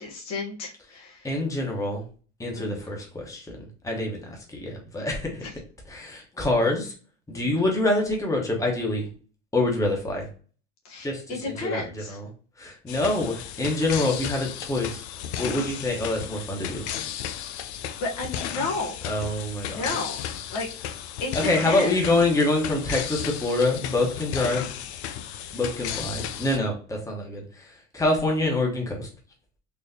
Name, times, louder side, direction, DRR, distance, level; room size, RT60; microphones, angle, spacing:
voice 1, 0.0-1.3 2.5-3.0 5.4-5.5 7.3-7.6 10.8-12.2 18.0-19.1 19.7-20.2 20.5-20.7 21.2-22.0, left 3 dB, 55° left, 0 dB, 1.2 m, -32 dB
voice 2, 1.2-2.0 2.4-3.6 3.8-4.2 4.5-5.4 5.9-6.9 7.3-9.1 9.5-10.3 11.0-11.8 12.1-12.3 12.6-15.0 15.4-16.8 19.0-19.8 21.3-24.6 25.5-27.7 27.9-29.1, left 2 dB, 10° left, 0 dB, 1.1 m, -26 dB
sound 1, 12.9-26.6, left 10 dB, 90° left, 0.5 m, -34 dB
4.1 x 2.5 x 2.8 m, 0.39 s
supercardioid pair, 90°, 32 cm